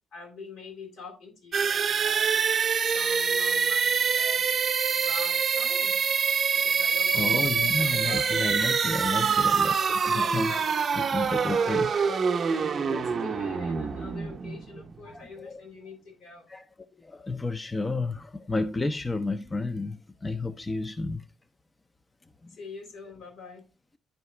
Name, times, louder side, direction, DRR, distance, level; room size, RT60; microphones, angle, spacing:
voice 1, 0.1-2.3 2.8-4.6 4.9-6.1 6.5-8.3 9.1-9.4 10.1-10.7 11.5-12.2 12.8-16.5 22.5-23.6, left 4 dB, 75° left, 3.7 m, -44 dB
sound 1, 1.5-15.2, right 6 dB, 45° right, 0.7 m, -25 dB
voice 2, 7.1-12.0 15.0-15.6 16.5-16.6 17.0-21.2 22.4-22.5, left 3 dB, 20° left, 0.5 m, -31 dB
10.5 x 4.7 x 3.2 m
cardioid pair, 90°, 0 cm